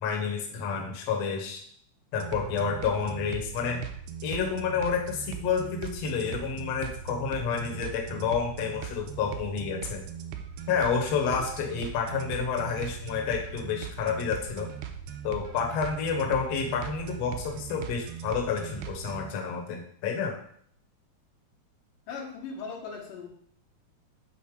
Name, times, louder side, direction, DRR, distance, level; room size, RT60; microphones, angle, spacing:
voice 1, 0.0-1.6 2.1-3.9 4.2-10.0 10.7-14.7 15.2-20.4, left 6 dB, 60° left, 0 dB, 1.9 m, -29 dB
sound 1, 2.2-19.3, right 8 dB, 85° right, 2.1 m, -39 dB
voice 2, 22.1-23.3, left 5 dB, 80° left, -1 dB, 2.8 m, -38 dB
7.2 x 4.1 x 4.8 m, 0.63 s
omnidirectional pair, 3.8 m